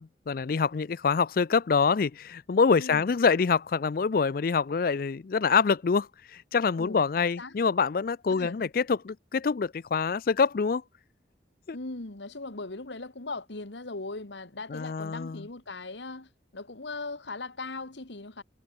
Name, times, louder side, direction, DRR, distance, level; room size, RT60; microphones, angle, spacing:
voice 1, 0.0-10.8 11.7-11.8 14.7-15.5, left 5 dB, 50° left, 0.4 m, -26 dB
voice 2, 2.8-3.1 6.8-7.6 8.3-8.7 11.7-18.4, left 3 dB, 75° left, 1.8 m, -39 dB
head